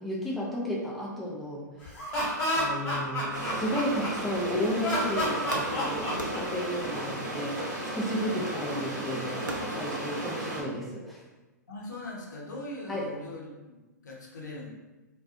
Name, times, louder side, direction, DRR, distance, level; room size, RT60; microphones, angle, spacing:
voice 1, 0.0-1.9 2.5-11.2 12.9-13.1, equal, ahead, -5 dB, 0.4 m, -33 dB
Laughter, 1.8-4.3 4.8-6.8, equal, 30° left, 1.2 m, -30 dB
sound 1, 3.3-10.6, right 1 dB, 65° right, 0.8 m, -35 dB
sound 2, 3.8-5.0 5.5-8.0 9.5-9.9, right 2 dB, 80° right, 0.4 m, -41 dB
voice 2, 11.7-14.7, left 1 dB, 70° left, -3 dB, 0.7 m, -41 dB
2.3 x 2.2 x 2.5 m, 1.1 s
figure-of-eight pair, 110°, 10 cm